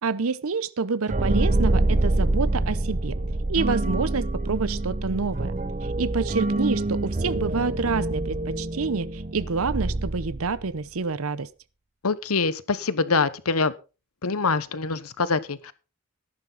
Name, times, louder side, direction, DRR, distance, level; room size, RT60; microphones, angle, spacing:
voice 1, 0.0-3.2 3.5-5.5 6.0-11.5, right 4 dB, 80° right, 0.7 m, -28 dB
sound 1, 1.1-10.7, right 2 dB, 35° right, 0.8 m, -26 dB
voice 2, 12.0-13.7 14.2-15.7, left 4 dB, 90° left, 1.1 m, -24 dB
14.0 x 11.5 x 4.0 m
head